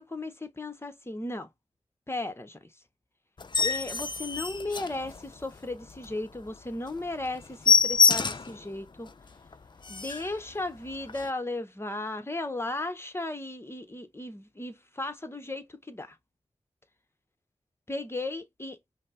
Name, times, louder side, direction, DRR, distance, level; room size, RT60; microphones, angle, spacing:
voice 1, 0.0-1.5 2.1-2.6 3.6-9.1 9.9-16.1 17.9-18.8, left 2 dB, 20° left, 0.9 m, -35 dB
sound 1, 3.4-5.5 6.0-6.1 6.5-6.6 6.9-7.0 7.3-8.6 9.1-9.2 9.5-9.6 9.8-10.3 11.1-11.3, left 5 dB, 40° left, 0.5 m, -25 dB
5.2 x 2.1 x 3.7 m
cardioid pair, 45°, 12 cm